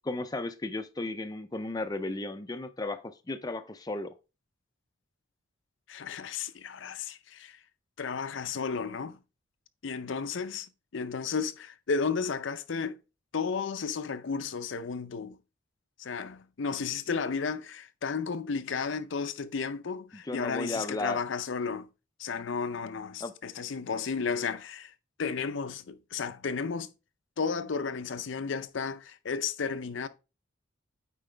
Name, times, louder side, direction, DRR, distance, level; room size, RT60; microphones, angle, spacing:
voice 1, 0.0-4.1 20.1-21.2 23.2-23.3, left 2 dB, 20° left, 0.5 m, -35 dB
voice 2, 5.9-7.6 8.0-9.2 9.8-13.0 13.3-15.4 16.0-21.9 22.2-24.9 25.2-26.9 27.4-30.1, left 5 dB, 65° left, 0.5 m, -33 dB
8.9 x 4.6 x 3.3 m
head